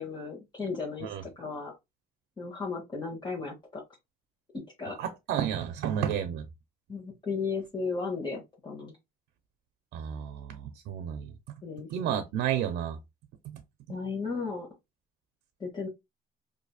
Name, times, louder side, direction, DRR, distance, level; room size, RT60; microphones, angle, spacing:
voice 1, 0.0-1.7 2.4-3.8 4.5-5.0 6.9-8.9 11.6-12.2 13.9-14.7 15.6-15.9, left 4 dB, 25° left, 1.1 m, -35 dB
voice 2, 5.0-6.4 9.9-11.3 11.9-13.0 13.5-13.6, right 9 dB, 75° right, 0.5 m, -31 dB
4.0 x 2.6 x 2.3 m
cardioid pair, 110°, 17 cm